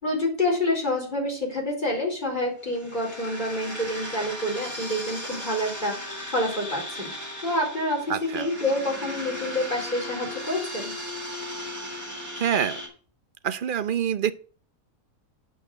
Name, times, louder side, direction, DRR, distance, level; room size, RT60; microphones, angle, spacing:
voice 1, 0.0-7.1 7.4-10.9, left 1 dB, 35° left, 4.5 m, -28 dB
sound 1, 2.6-12.9, left 1 dB, 10° right, 3.3 m, -36 dB
voice 2, 8.1-8.5 12.4-12.8 13.4-14.3, right 9 dB, 50° right, 0.7 m, -26 dB
9.2 x 5.7 x 7.8 m
omnidirectional pair, 1.4 m